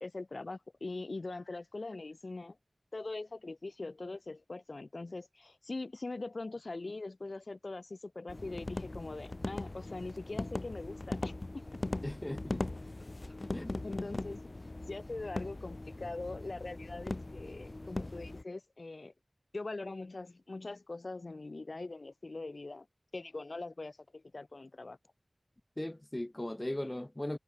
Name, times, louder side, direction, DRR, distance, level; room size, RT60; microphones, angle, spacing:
voice 1, 0.0-2.6 2.9-11.4 13.8-14.4 14.9-19.1 19.5-22.9 23.1-25.0, left 3 dB, 70° left, 1.8 m, -42 dB
sound 1, 8.3-18.4, left 2 dB, 50° left, 4.1 m, -40 dB
voice 2, 12.0-12.7 13.5-13.8 25.8-27.4, left 1 dB, 25° left, 3.7 m, -38 dB
wide cardioid pair, 60°, 0 cm